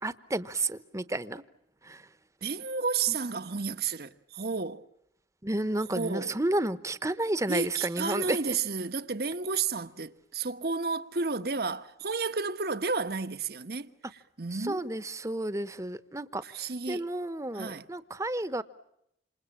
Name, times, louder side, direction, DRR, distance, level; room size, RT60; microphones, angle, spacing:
voice 1, 0.0-1.4 1.8-2.1 3.1-3.2 5.4-8.6 14.5-18.6, right 1 dB, 20° right, 1.0 m, -32 dB
voice 2, 2.4-4.8 5.9-6.3 7.5-13.9 14.4-14.9 16.4-17.1 17.5-17.8, right 4 dB, 60° right, 1.2 m, -32 dB
28.0 x 27.5 x 7.3 m
head